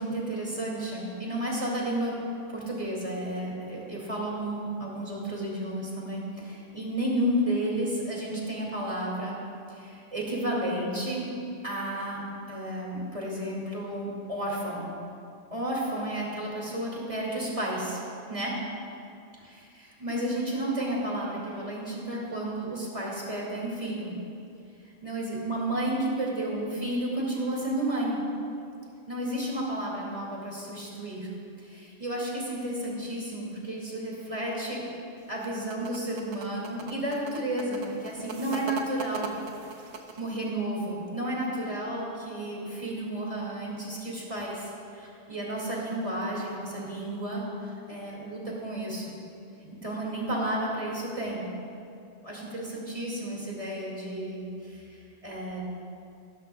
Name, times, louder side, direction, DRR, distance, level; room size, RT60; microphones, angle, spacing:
voice 1, 0.0-2.2 2.5-9.4 9.7-11.3 11.6-14.9 15.5-18.0 18.3-18.6 19.4-24.2 25.0-28.2 29.1-31.3 31.6-34.8 35.3-39.4 40.2-49.0 49.6-51.5 52.2-55.6, right 1 dB, 25° right, -4 dB, 2.2 m, -32 dB
sound 1, 35.2-40.4, right 5 dB, 65° right, 1.1 m, -40 dB
16.5 x 12.0 x 2.3 m, 2.6 s
omnidirectional pair, 1.3 m